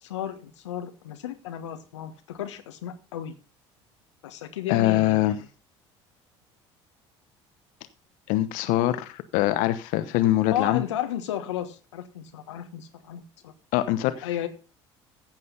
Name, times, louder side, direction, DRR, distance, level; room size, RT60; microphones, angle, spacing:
voice 1, 0.0-3.3 4.2-5.5 10.5-13.5 14.2-14.5, left 11 dB, 80° left, 6 dB, 1.3 m, -33 dB
voice 2, 4.7-5.3 8.3-10.8 13.7-14.3, left 15 dB, 65° left, 12 dB, 1.1 m, -23 dB
15.0 x 7.7 x 3.9 m, 0.32 s
hypercardioid pair, 60°, 15 cm